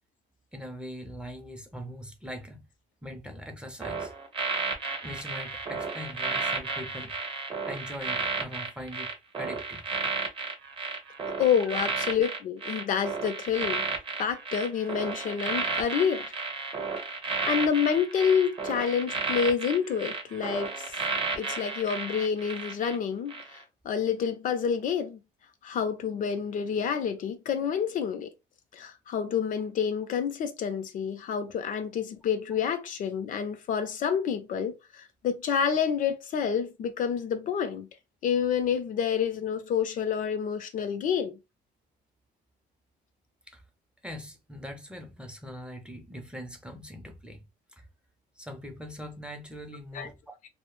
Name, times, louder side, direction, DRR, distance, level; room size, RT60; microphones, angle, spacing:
voice 1, 0.5-2.6 3.0-4.1 5.0-7.1 7.7-9.1 9.4-9.9 11.7-11.8 43.5-43.6 44.0-47.4 47.7-47.8 48.4-50.2, equal, 5° right, 0.5 m, -41 dB
sound 1, 3.8-23.0 23.3-23.6, right 4 dB, 30° right, 0.8 m, -33 dB
voice 2, 11.4-13.8 14.2-16.3 17.4-20.9 21.3-25.2 25.6-28.3 28.7-37.9 38.2-41.4 49.9-50.1, left 7 dB, 50° left, 0.5 m, -28 dB
2.1 x 2.0 x 3.1 m
cardioid pair, 110°, 17 cm